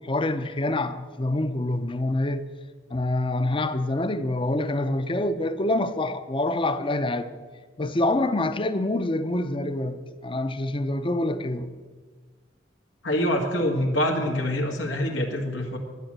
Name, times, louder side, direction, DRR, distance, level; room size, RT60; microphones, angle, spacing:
voice 1, 0.0-2.4 2.9-7.3 7.8-11.8, left 2 dB, 30° left, 0.7 m, -26 dB
voice 2, 13.0-15.8, equal, 90° left, 1.8 m, -25 dB
10.5 x 9.4 x 7.5 m
head